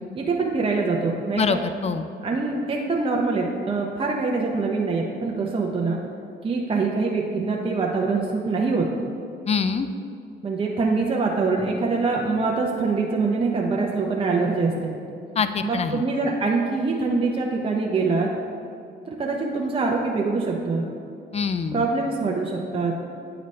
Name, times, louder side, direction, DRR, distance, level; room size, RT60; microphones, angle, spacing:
voice 1, 0.1-1.6 2.2-6.0 6.4-8.9 10.4-15.0 15.6-18.3 19.1-20.9 21.7-23.0, right 3 dB, 25° right, -1 dB, 0.7 m, -24 dB
voice 2, 1.4-2.1 9.5-9.9 15.4-16.0 21.3-21.9, left 5 dB, 35° left, 10 dB, 0.4 m, -24 dB
9.4 x 4.0 x 3.2 m, 2.5 s
cardioid pair, 90°, 20 cm